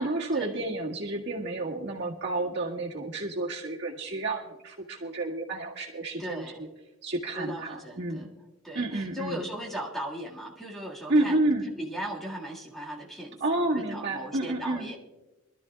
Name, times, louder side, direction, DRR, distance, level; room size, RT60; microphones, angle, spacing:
voice 1, 0.0-6.7 7.0-8.3 8.7-9.4 11.1-11.7 13.4-14.9, right 2 dB, 55° right, -3 dB, 1.9 m, -30 dB
voice 2, 6.2-6.6 7.4-8.3 8.6-11.4 11.8-15.0, right 1 dB, ahead, -4 dB, 1.9 m, -38 dB
25.0 x 13.0 x 2.4 m, 1.1 s
head